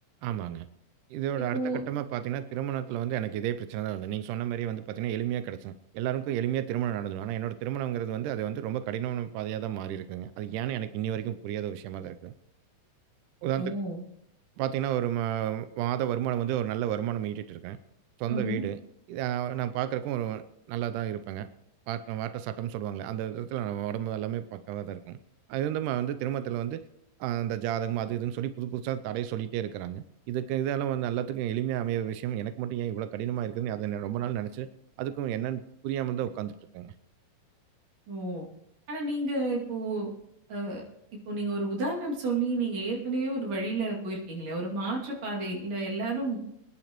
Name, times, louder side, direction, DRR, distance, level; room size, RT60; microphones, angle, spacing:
voice 1, 0.2-0.7 1.1-12.3 13.4-13.7 14.6-17.8 18.2-18.8 19.1-21.5 21.9-25.2 25.5-26.9 27.2-34.7 35.0-36.9, right 11 dB, 85° right, 12 dB, 1.8 m, -31 dB
voice 2, 13.6-14.0 18.3-18.6 38.1-38.5 38.9-40.1 40.5-40.8 41.3-46.4, right 2 dB, 50° right, -2 dB, 3.4 m, -31 dB
23.5 x 10.5 x 3.0 m, 0.76 s
omnidirectional pair, 4.3 m